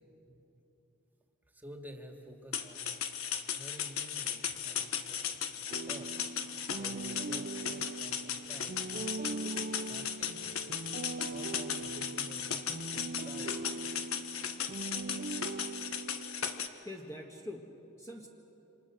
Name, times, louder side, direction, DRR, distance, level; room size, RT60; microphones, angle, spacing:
voice 1, 1.5-2.9 3.6-6.1 6.8-9.4 9.9-10.6 11.3-12.7 13.2-13.7, right 1 dB, 10° right, 3 dB, 2.2 m, -51 dB
sound 1, 2.5-16.7, left 8 dB, 75° left, 1.4 m, -37 dB
sound 2, 5.7-16.7, right 3 dB, 40° right, 0.6 m, -41 dB
voice 2, 16.8-18.3, left 1 dB, 15° left, 0 dB, 1.5 m, -44 dB
28.0 x 26.5 x 6.4 m, 3.0 s
head